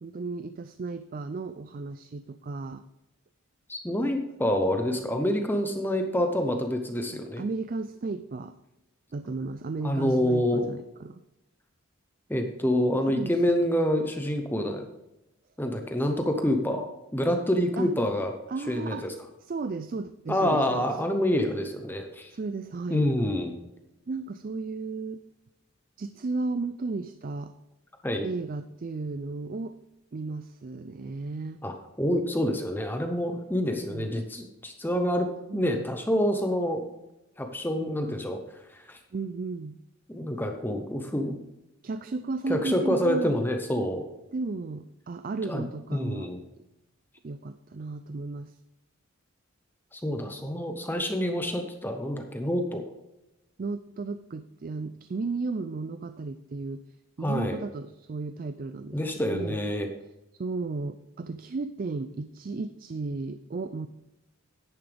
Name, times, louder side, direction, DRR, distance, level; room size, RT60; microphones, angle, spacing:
voice 1, 0.0-2.8 7.1-8.5 9.1-11.2 13.1-13.7 17.8-17.9 18.5-19.1 19.4-20.9 22.3-23.1 24.1-25.2 26.0-27.5 28.2-29.8 30.1-31.6 33.9-34.1 35.5-35.9 37.8-38.2 39.1-39.8 41.8-43.4 44.3-46.3 47.2-48.5 53.6-56.9 57.2-59.0 59.3-59.6 60.4-63.9, right 3 dB, 40° right, 11 dB, 0.4 m, -34 dB
voice 2, 3.7-7.4 9.8-10.7 12.3-14.9 15.6-16.9 17.1-18.3 18.7-19.1 20.3-22.3 22.9-23.5 28.0-28.3 31.6-36.9 37.4-39.0 40.1-41.4 42.5-44.1 45.5-45.6 45.9-46.4 49.9-52.8 57.2-57.6 58.9-59.9, equal, 10° left, 4 dB, 0.8 m, -27 dB
10.5 x 9.5 x 3.4 m, 0.93 s
head